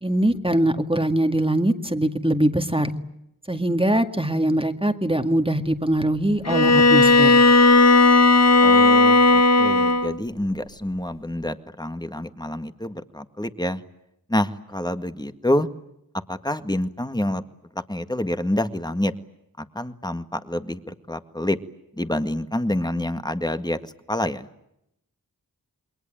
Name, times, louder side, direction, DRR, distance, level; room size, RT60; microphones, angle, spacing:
voice 1, 0.0-2.9 3.5-7.4, right 1 dB, 15° right, 6 dB, 2.0 m, -22 dB
Bowed string instrument, 6.5-10.2, left 3 dB, 45° left, 1.0 m, -15 dB
voice 2, 8.6-13.8 14.3-15.7 16.3-17.4 17.7-19.1 19.6-21.6 22.0-24.5, left 1 dB, 10° left, 9 dB, 1.8 m, -27 dB
28.5 x 22.0 x 9.0 m, 0.80 s
wide cardioid pair, 50°, 35 cm